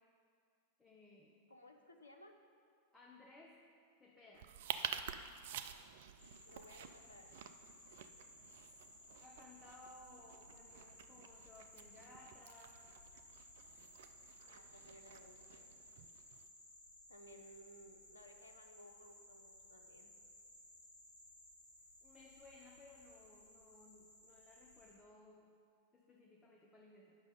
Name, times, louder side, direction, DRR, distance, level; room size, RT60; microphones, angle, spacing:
voice 1, 0.8-1.4 2.9-3.6 4.0-4.5 9.2-12.8 14.5-14.7 22.0-25.6 25.9-27.2, left 2 dB, 15° left, -2 dB, 0.9 m, -61 dB
voice 2, 1.5-2.4 6.2-7.3 14.5-15.7 17.1-20.1, equal, 75° left, 5 dB, 0.8 m, -60 dB
sound 1, 4.3-16.5, right 8 dB, 55° right, 0.4 m, -50 dB
sound 2, 6.2-24.9, left 1 dB, 85° right, 2.5 m, -60 dB
9.7 x 6.0 x 5.4 m, 2.2 s
figure-of-eight pair, 90°, 0 cm